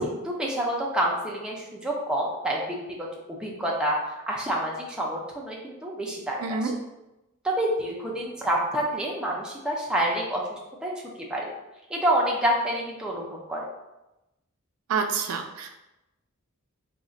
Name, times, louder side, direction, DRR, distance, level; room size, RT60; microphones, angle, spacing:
voice 1, 0.0-6.7 7.4-10.9 11.3-11.5 11.9-13.7, right 1 dB, 5° right, -3 dB, 0.4 m, -28 dB
voice 2, 6.4-6.7 14.9-15.7, right 5 dB, 75° right, 4 dB, 0.4 m, -28 dB
2.4 x 2.1 x 3.8 m, 0.96 s
head